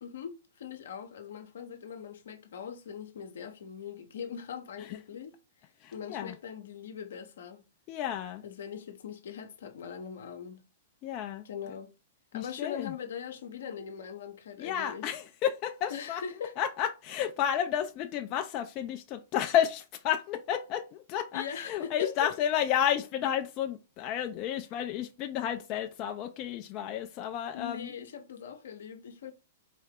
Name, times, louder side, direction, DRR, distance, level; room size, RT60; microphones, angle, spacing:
voice 1, 0.0-5.4 5.9-7.6 8.4-10.6 11.4-11.9 12.3-15.1 15.9-16.6 21.3-22.3 27.5-29.3, left 7 dB, 70° left, 0.8 m, -41 dB
voice 2, 5.8-6.3 7.9-8.4 11.0-11.4 12.3-12.9 14.6-16.2 16.6-27.9, left 10 dB, 40° left, 0.4 m, -31 dB
4.2 x 2.8 x 3.6 m
hypercardioid pair, 115°, 0 cm